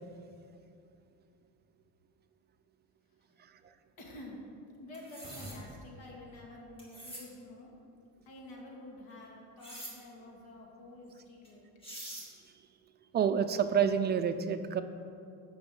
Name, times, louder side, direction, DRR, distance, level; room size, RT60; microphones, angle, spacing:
voice 1, 4.0-4.4 4.8-7.7 8.2-11.7, left 1 dB, 85° left, -2 dB, 2.7 m, -49 dB
sound 1, 4.9-5.6 6.8-7.3 9.6-9.9 11.4-11.5 11.8-12.3, equal, 15° left, 2.1 m, -45 dB
sound 2, 5.2-7.7, right 1 dB, 15° right, 1.7 m, -51 dB
voice 2, 13.1-14.8, right 7 dB, 30° right, 9 dB, 0.4 m, -28 dB
10.0 x 6.2 x 7.8 m, 2.5 s
cardioid pair, 165°, 35 cm